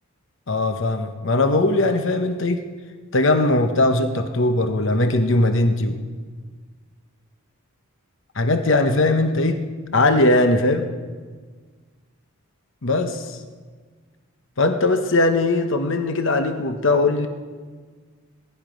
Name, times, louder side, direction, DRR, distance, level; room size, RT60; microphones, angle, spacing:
voice 1, 0.5-2.6 3.1-6.0 8.4-9.6 9.9-10.9 12.8-13.4 14.6-17.3, left 2 dB, 55° left, 7 dB, 0.9 m, -20 dB
21.5 x 11.0 x 5.1 m, 1.5 s
head